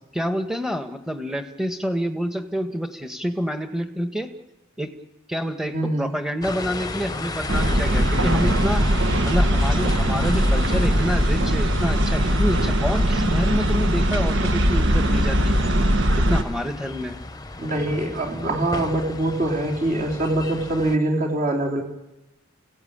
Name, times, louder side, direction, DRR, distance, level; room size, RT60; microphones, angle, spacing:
voice 1, 0.1-4.3 4.8-4.9 5.3-8.8 9.2-15.6 16.2-17.1, equal, 5° right, 6 dB, 1.5 m, -27 dB
voice 2, 5.7-6.1 17.6-21.8, right 1 dB, 40° right, 0 dB, 3.7 m, -24 dB
Light rain at night with cars passing by, 6.4-21.0, left 2 dB, 20° left, 1.0 m, -35 dB
sound 1, 7.5-16.4, equal, 60° right, 1.6 m, -20 dB
29.0 x 16.0 x 8.8 m, 1.0 s
head